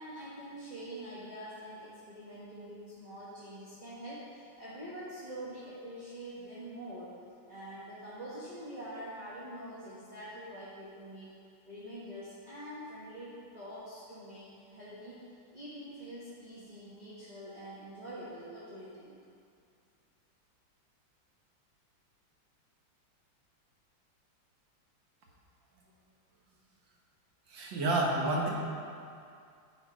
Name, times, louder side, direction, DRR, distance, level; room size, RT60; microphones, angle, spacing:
voice 1, 0.0-7.2 7.5-11.3 11.7-19.2, right 1 dB, 25° right, -11 dB, 1.2 m, -45 dB
voice 2, 27.5-28.5, right 2 dB, 65° right, -2 dB, 1.8 m, -29 dB
9.7 x 4.4 x 5.1 m, 2.4 s
omnidirectional pair, 2.3 m